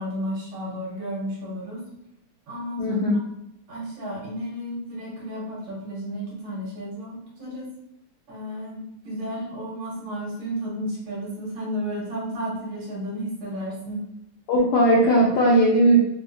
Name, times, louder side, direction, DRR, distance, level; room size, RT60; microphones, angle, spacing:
voice 1, 0.0-1.8 2.5-2.9 3.1-3.2 3.7-7.7 8.3-14.1, equal, 70° right, -5 dB, 1.9 m, -32 dB
voice 2, 2.8-3.1 14.5-16.0, right 1 dB, 80° left, -3 dB, 0.9 m, -18 dB
4.7 x 2.0 x 2.5 m, 0.83 s
omnidirectional pair, 2.4 m